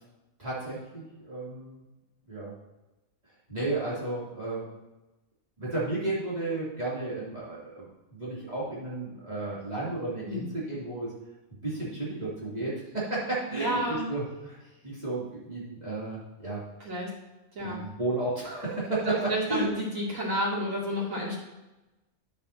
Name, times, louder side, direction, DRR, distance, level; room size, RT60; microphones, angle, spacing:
voice 1, 0.4-1.8 2.3-2.5 3.5-4.7 5.6-11.1 11.6-14.6 14.8-16.6 17.6-19.1 19.5-19.7, right 2 dB, 30° right, -9 dB, 3.1 m, -33 dB
voice 2, 13.6-14.0 16.8-17.1 17.5-17.8 19.0-21.4, equal, 85° right, -5 dB, 3.1 m, -30 dB
10.0 x 8.4 x 2.8 m, 1.0 s
omnidirectional pair, 1.3 m